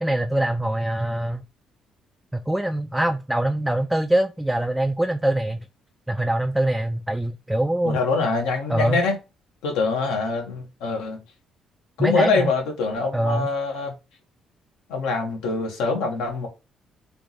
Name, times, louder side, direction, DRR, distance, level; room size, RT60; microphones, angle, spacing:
voice 1, 0.0-1.4 2.3-5.6 6.1-8.0 8.7-9.0 12.0-12.5 13.1-13.5, right 1 dB, 5° right, 0.4 m, -23 dB
voice 2, 7.8-9.2 9.6-11.2 12.0-13.9 14.9-16.5, left 4 dB, 90° left, 1.1 m, -24 dB
3.4 x 3.0 x 3.8 m
supercardioid pair, 70°, 0 cm